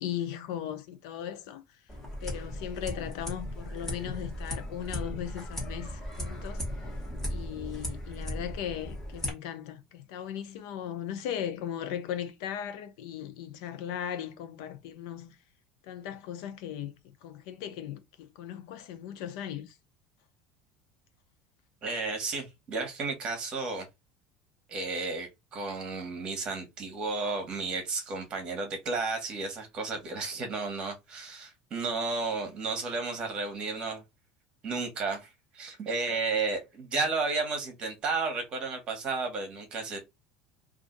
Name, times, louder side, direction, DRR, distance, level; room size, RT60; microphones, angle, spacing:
voice 1, 0.0-1.6 2.2-6.6 7.3-15.3 15.8-16.9 17.2-19.7, left 10 dB, 75° left, 0.6 m, -37 dB
sound 1, 1.9-9.3, left 1 dB, 10° left, 1.3 m, -37 dB
voice 2, 21.8-23.9 24.7-34.0 34.6-40.0, right 4 dB, 30° right, 1.2 m, -33 dB
2.6 x 2.5 x 3.8 m
cardioid pair, 160°, 3 cm